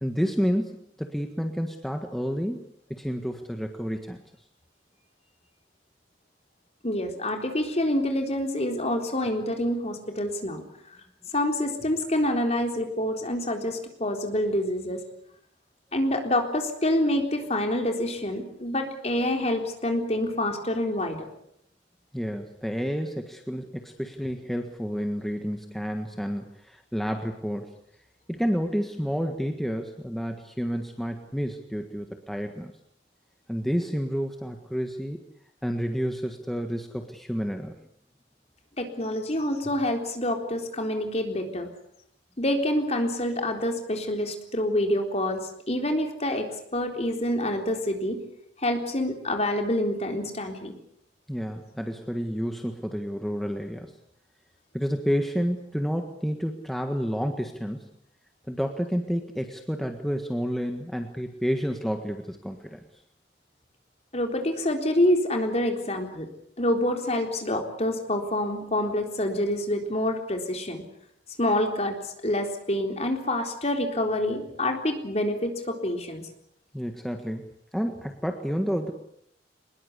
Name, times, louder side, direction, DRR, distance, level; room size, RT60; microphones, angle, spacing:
voice 1, 0.0-4.2 22.1-27.7 28.3-32.7 33.5-35.2 35.6-37.7 51.3-53.9 54.7-57.9 58.5-62.8 76.7-78.9, equal, ahead, 4 dB, 1.6 m, -30 dB
voice 2, 6.8-10.6 11.3-15.0 15.9-21.3 38.8-41.7 42.4-45.4 45.7-48.2 48.6-50.8 64.1-66.3 66.6-70.8 71.4-76.3, left 1 dB, 35° left, 4 dB, 3.9 m, -27 dB
23.5 x 21.0 x 8.4 m, 0.71 s
head